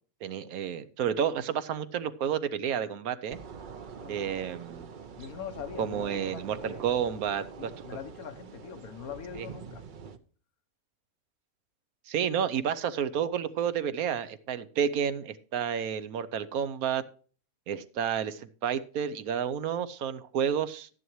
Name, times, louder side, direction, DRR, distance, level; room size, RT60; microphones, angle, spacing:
voice 1, 0.2-3.4 4.1-4.9 5.8-7.7 9.4-9.5 12.1-17.0 17.7-20.9, right 8 dB, 85° right, 1.2 m, -30 dB
sound 1, 3.3-10.2, right 6 dB, 50° right, 0.6 m, -45 dB
voice 2, 5.2-6.8 7.6-9.8, left 8 dB, 85° left, 1.4 m, -42 dB
12.5 x 10.0 x 3.1 m
omnidirectional pair, 1.5 m